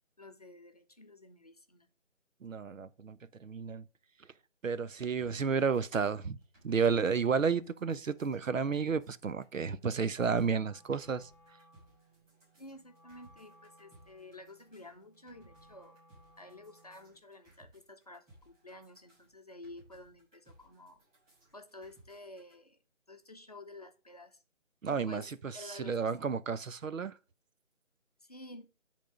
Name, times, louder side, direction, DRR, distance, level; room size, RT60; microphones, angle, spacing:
voice 1, 0.2-1.9 12.6-16.0 16.4-21.0 21.5-22.8 23.1-24.4 24.8-26.1 28.2-28.7, left 2 dB, 30° left, 0.7 m, -51 dB
voice 2, 2.4-3.8 4.6-6.4 6.6-11.3 24.8-25.2 25.7-27.1, right 5 dB, 85° right, 0.8 m, -31 dB
sound 1, 5.2-22.5, right 1 dB, 10° right, 3.5 m, -64 dB
Wind instrument woodwind instrument, 10.5-17.2, equal, 30° right, 2.4 m, -63 dB
10.0 x 3.7 x 5.0 m
figure-of-eight pair, 165°, 38 cm